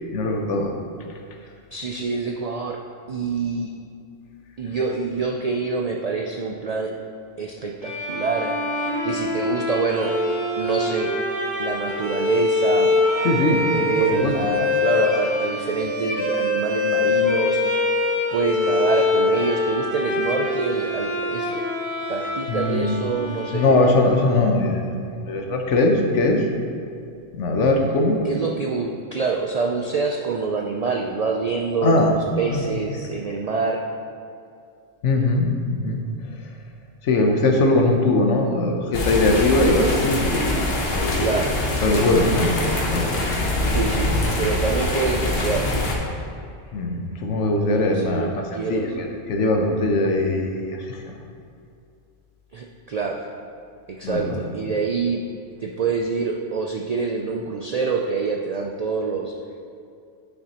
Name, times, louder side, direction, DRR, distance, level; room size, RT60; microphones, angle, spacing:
voice 1, 0.1-0.7 13.2-13.6 14.1-14.3 22.5-23.0 23.5-26.5 27.3-28.2 31.8-32.1 32.5-32.6 35.0-36.0 37.0-41.3 41.8-42.6 42.8-43.4 46.7-48.4 48.7-51.1 54.0-54.4, left 2 dB, 85° left, 3 dB, 1.2 m, -21 dB
voice 2, 1.7-2.8 3.1-3.7 4.6-6.9 7.4-10.2 10.6-11.1 11.6-13.0 13.7-17.9 18.3-21.6 22.1-24.0 28.2-33.8 41.2-41.6 43.7-45.8 47.6-48.9 52.5-53.2 53.9-55.2 55.6-59.3, right 4 dB, 70° right, 1 dB, 0.3 m, -26 dB
Bowed string instrument, 7.8-24.4, left 2 dB, 10° right, 1.9 m, -24 dB
sound 1, 38.9-46.0, left 1 dB, 60° left, 1.2 m, -24 dB
9.5 x 6.5 x 2.9 m, 2.4 s
omnidirectional pair, 1.2 m